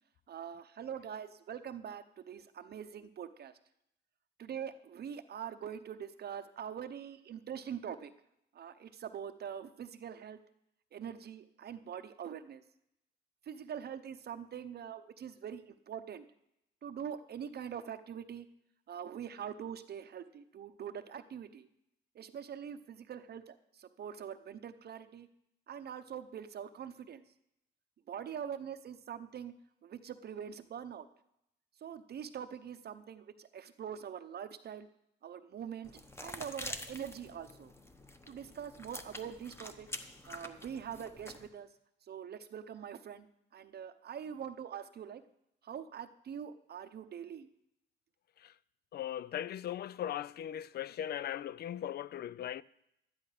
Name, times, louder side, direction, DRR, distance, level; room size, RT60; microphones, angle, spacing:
voice 1, 0.3-3.5 4.4-8.1 8.5-10.4 10.9-12.6 13.5-16.3 16.8-18.5 18.9-21.7 22.1-25.3 25.7-27.2 28.1-29.5 29.8-31.1 31.8-34.9 35.2-37.7 38.3-39.9 40.3-41.7 42.0-43.3 43.5-45.2 45.6-47.5, right 8 dB, 55° right, 0.7 m, -44 dB
sound 1, 35.8-41.5, left 1 dB, 10° left, 1.0 m, -47 dB
voice 2, 48.9-52.6, left 11 dB, 55° left, 0.4 m, -39 dB
12.0 x 10.5 x 4.9 m
cardioid pair, 90°, 20 cm